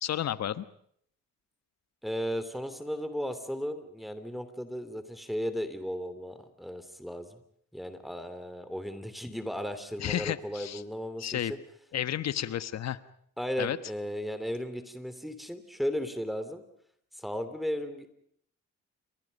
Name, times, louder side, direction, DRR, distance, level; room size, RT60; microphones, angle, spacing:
voice 1, 0.0-0.7 10.0-10.8 11.2-11.5 11.9-13.0 13.6-13.8, left 11 dB, 60° left, 13 dB, 1.2 m, -31 dB
voice 2, 2.0-7.4 7.7-11.6 13.4-16.6 17.1-18.1, equal, ahead, 10 dB, 2.9 m, -35 dB
29.5 x 24.0 x 5.4 m, 0.66 s
cardioid pair, 90°, 30 cm